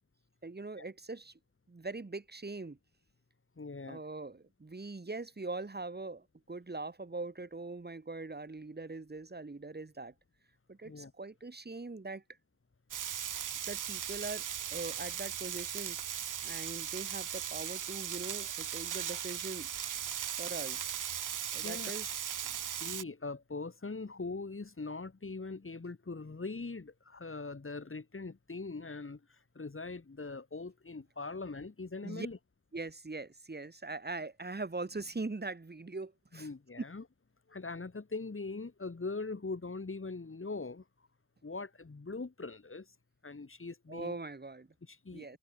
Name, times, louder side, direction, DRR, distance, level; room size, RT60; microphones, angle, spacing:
voice 1, 0.4-1.3 1.7-2.8 3.9-10.1 10.7-12.2 13.6-16.0 16.4-19.7 20.4-20.9 21.5-22.3 32.0-32.3 32.7-36.5 43.9-44.7 45.1-45.4, right 3 dB, 20° right, 2.1 m, -42 dB
voice 2, 3.6-4.0 10.8-11.1 21.6-21.9 22.8-32.4 36.3-37.0 37.5-40.8 41.4-42.9 43.2-44.2 44.8-45.4, left 3 dB, 25° left, 2.8 m, -41 dB
Frying (food), 12.9-23.0, right 9 dB, 40° right, 0.8 m, -38 dB
supercardioid pair, 55°, 46 cm